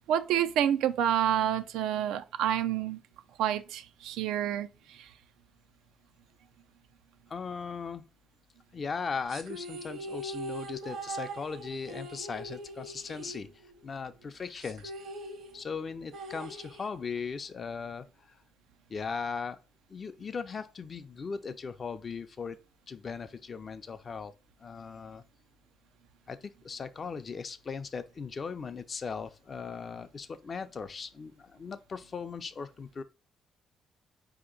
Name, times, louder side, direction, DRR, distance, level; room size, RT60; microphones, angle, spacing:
voice 1, 0.1-3.0 3.4-5.1, right 10 dB, 90° right, 0.4 m, -28 dB
voice 2, 7.3-8.1 8.7-14.9 15.5-18.4 18.9-19.6 19.9-22.6 22.9-24.3 24.6-25.2 26.3-33.0, left 5 dB, 40° left, 0.5 m, -38 dB
sound 1, 9.3-14.0 14.2-14.3 14.6-17.3, right 1 dB, 75° right, 0.9 m, -42 dB
4.3 x 2.9 x 3.8 m
cardioid pair, 90°, 0 cm